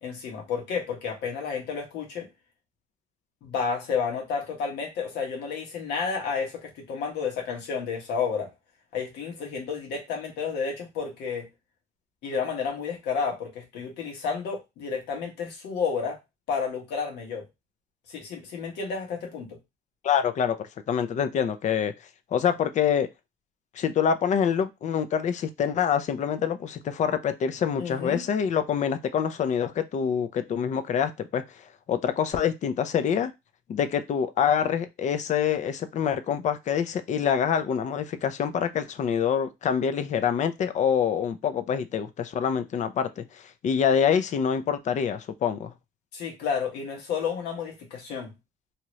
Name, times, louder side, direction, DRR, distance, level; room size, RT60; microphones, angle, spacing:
voice 1, 0.0-2.3 3.4-8.5 8.9-11.5 12.2-16.2 16.5-17.5 18.1-19.6 27.8-28.2 46.1-48.3, left 5 dB, 80° left, 0 dB, 1.2 m, -31 dB
voice 2, 20.0-21.9 22.3-23.1 23.7-31.4 31.9-33.3 33.7-45.7, left 8 dB, 45° left, 11 dB, 0.5 m, -26 dB
2.8 x 2.3 x 3.1 m, 0.21 s
cardioid pair, 110°, 17 cm